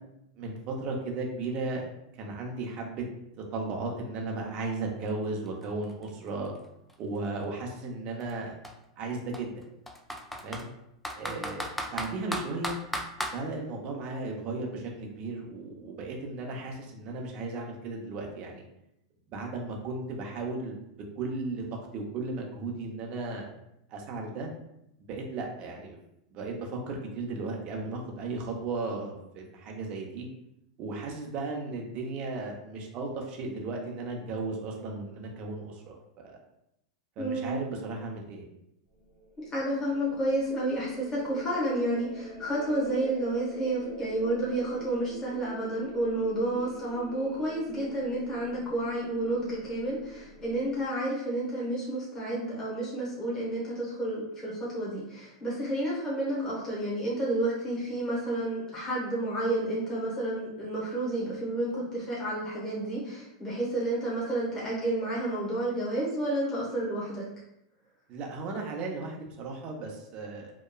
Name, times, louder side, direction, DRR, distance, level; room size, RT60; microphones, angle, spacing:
voice 1, 0.4-1.9 2.1-3.1 3.4-6.5 7.0-8.6 9.0-9.5 10.4-10.7 11.2-12.8 13.3-18.6 19.3-20.8 21.2-21.6 21.9-23.5 23.9-24.5 25.1-26.0 26.3-30.3 30.8-36.4 37.2-38.5 68.1-70.5, right 3 dB, 40° right, 0 dB, 0.6 m, -35 dB
Computer keyboard, 5.1-5.2 5.5-7.4 8.2-8.3 8.6-8.7 9.3-10.7 11.0-13.4, equal, 5° left, 0.3 m, -35 dB
voice 2, 37.2-37.6 39.5-67.2, right 1 dB, 20° left, -7 dB, 1.0 m, -30 dB
sound 1, 38.9-50.9, left 2 dB, 80° left, 1.2 m, -46 dB
2.9 x 2.2 x 2.2 m, 0.82 s
hypercardioid pair, 115°, 3 cm